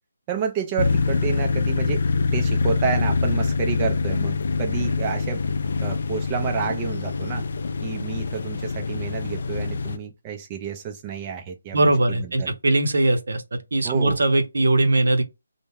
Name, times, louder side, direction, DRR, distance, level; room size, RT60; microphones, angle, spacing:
voice 1, 0.3-2.0 2.3-5.4 5.8-7.5 7.8-12.6 13.8-14.2, right 7 dB, 20° right, 0.4 m, -29 dB
sound 1, 0.8-10.0, left 4 dB, 55° left, 0.3 m, -24 dB
voice 2, 11.7-13.4 13.7-15.2, right 2 dB, 75° right, 0.7 m, -20 dB
2.2 x 2.1 x 3.2 m
hypercardioid pair, 160°, 0 cm